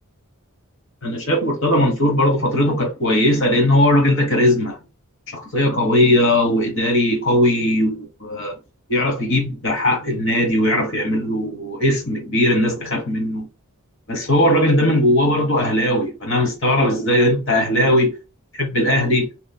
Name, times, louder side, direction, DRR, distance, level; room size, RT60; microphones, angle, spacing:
voice 1, 1.0-4.8 5.3-8.6 8.9-13.5 14.1-18.2 18.5-19.3, left 1 dB, 60° left, 0.9 m, -18 dB
2.8 x 2.0 x 2.6 m
head